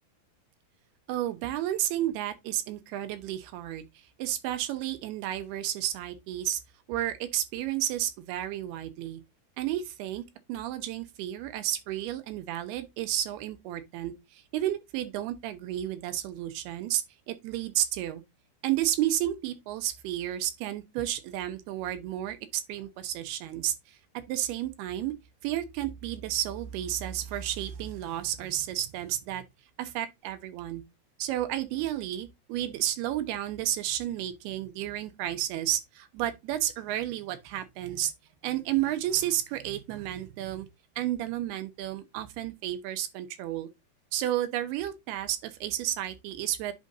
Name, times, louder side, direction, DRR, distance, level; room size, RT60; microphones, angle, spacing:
voice 1, 1.1-3.8 4.2-6.6 6.9-9.2 9.6-10.2 10.5-18.2 18.6-24.0 24.3-25.2 25.4-29.4 29.8-30.8 31.2-38.1 38.4-40.7 41.0-43.7 44.1-46.7, right 12 dB, 85° right, 2.7 m, -32 dB
10.5 x 3.8 x 2.5 m
omnidirectional pair, 4.7 m